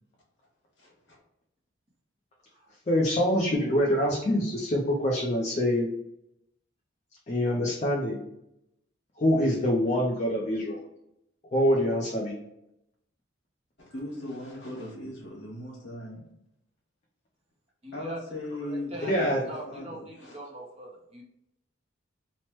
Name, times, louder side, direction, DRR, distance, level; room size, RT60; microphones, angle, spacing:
voice 1, 0.8-1.2 13.8-16.2 17.9-18.9 19.2-20.4, left 1 dB, 65° left, -4 dB, 1.3 m, -39 dB
voice 2, 2.9-5.9 7.3-8.3 9.2-10.8 11.5-12.4 19.0-19.4, equal, 35° left, -2 dB, 0.4 m, -25 dB
voice 3, 17.8-18.2 18.5-21.2, right 2 dB, 30° right, -2 dB, 0.6 m, -42 dB
3.0 x 2.0 x 3.0 m, 0.82 s
head